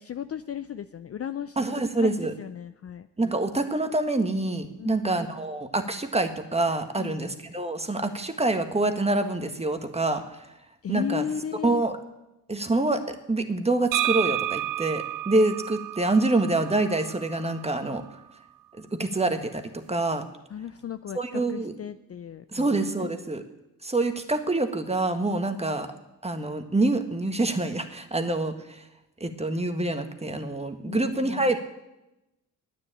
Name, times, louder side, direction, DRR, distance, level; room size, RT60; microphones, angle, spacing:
voice 1, 0.0-1.6 2.0-3.1 4.8-5.2 7.0-7.3 10.8-11.8 20.5-22.7 23.0-23.1 30.8-31.5, left 9 dB, 35° left, 12 dB, 0.5 m, -35 dB
voice 2, 1.6-2.3 3.2-10.2 10.9-11.2 11.6-12.0 12.5-13.0 13.3-18.0 18.8-20.2 21.1-21.7 22.5-23.4 23.8-25.9 26.2-28.8 29.2-31.6, right 2 dB, 15° right, 7 dB, 1.5 m, -26 dB
sound 1, 13.9-17.7, right 14 dB, 50° right, 0.5 m, -31 dB
9.9 x 9.4 x 8.9 m, 0.95 s
supercardioid pair, 65°, 41 cm